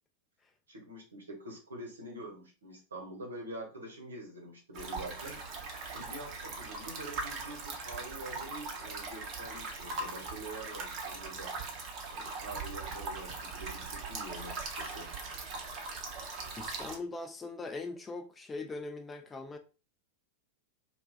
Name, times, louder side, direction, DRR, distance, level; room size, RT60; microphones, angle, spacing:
voice 1, 0.7-5.4 5.9-11.6 12.1-15.1, right 1 dB, 75° right, 0.9 m, -45 dB
sound 1, 4.7-17.0, right 3 dB, 40° right, 0.6 m, -40 dB
voice 2, 16.6-19.6, left 3 dB, 15° left, 0.4 m, -41 dB
2.2 x 2.2 x 3.8 m
figure-of-eight pair, 90°, 0 cm